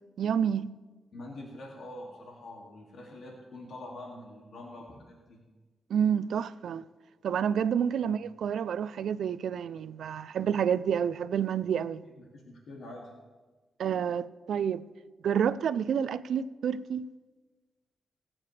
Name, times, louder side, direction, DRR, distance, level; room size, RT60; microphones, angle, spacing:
voice 1, 0.2-0.7 5.9-6.8 7.2-12.0 13.8-14.8 15.2-17.1, right 8 dB, 80° right, 0.4 m, -29 dB
voice 2, 1.1-5.4 7.9-8.1 12.0-13.1, left 1 dB, 75° left, 2.4 m, -45 dB
21.0 x 8.7 x 3.3 m
cardioid pair, 90°, 0 cm